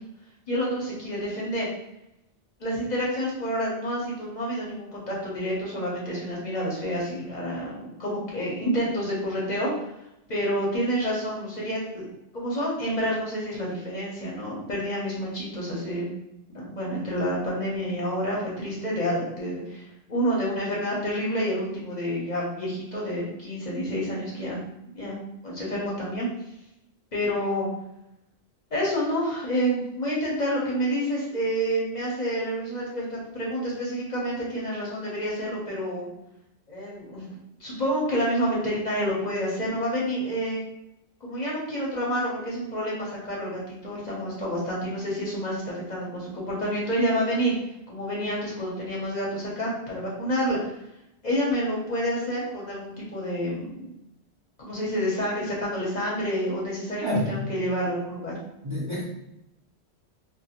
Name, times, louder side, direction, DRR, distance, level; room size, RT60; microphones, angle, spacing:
voice 1, 0.5-1.7 2.6-9.7 10.3-12.1 12.3-16.1 16.5-24.6 24.9-25.2 25.4-26.3 27.1-27.7 28.7-36.1 36.7-37.3 37.6-40.6 41.2-47.6 47.9-50.7 51.2-53.9 54.6-58.4, equal, 45° left, -5 dB, 0.8 m, -28 dB
voice 2, 57.0-57.5 58.6-59.0, left 1 dB, 35° right, -7 dB, 0.5 m, -27 dB
2.4 x 2.2 x 2.8 m, 0.86 s
omnidirectional pair, 1.1 m